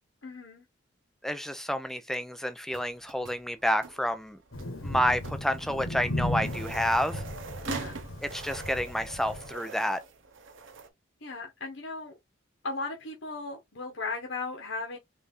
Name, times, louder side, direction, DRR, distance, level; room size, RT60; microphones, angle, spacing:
voice 1, 0.2-0.6 7.7-8.0 11.2-12.1 12.6-15.0, left 3 dB, 75° left, 1.1 m, -36 dB
voice 2, 1.2-4.4 4.8-7.2 8.2-10.0, equal, ahead, 0.4 m, -29 dB
sound 1, 2.7-10.9, right 4 dB, 70° right, 0.8 m, -43 dB
Thunder, 4.5-9.5, left 1 dB, 90° left, 1.5 m, -36 dB
4.1 x 3.3 x 3.6 m
head